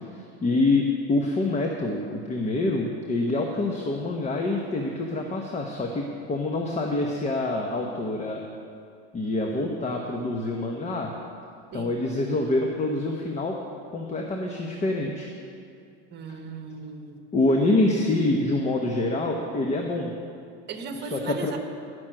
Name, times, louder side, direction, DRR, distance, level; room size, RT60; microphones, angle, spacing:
voice 1, 0.4-8.4 9.1-11.1 11.7-13.6 13.9-15.3 17.3-20.1 20.9-21.5, left 2 dB, 20° left, 1 dB, 1.0 m, -26 dB
voice 2, 16.1-17.2 20.7-21.6, right 4 dB, 30° right, 6 dB, 1.3 m, -36 dB
12.0 x 6.2 x 7.7 m, 2.3 s
supercardioid pair, 110°, 33 cm